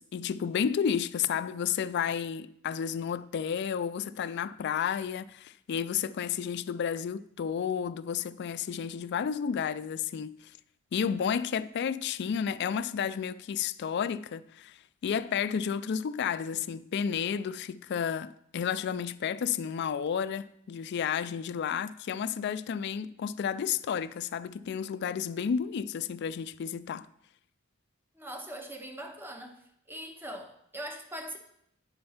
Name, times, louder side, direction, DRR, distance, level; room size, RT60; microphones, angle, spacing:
voice 1, 0.0-10.4 10.9-14.8 15.0-27.1, left 7 dB, 55° left, 0.3 m, -31 dB
voice 2, 28.1-29.6 29.9-31.4, right 1 dB, 10° right, 0.8 m, -41 dB
9.6 x 4.3 x 5.6 m
head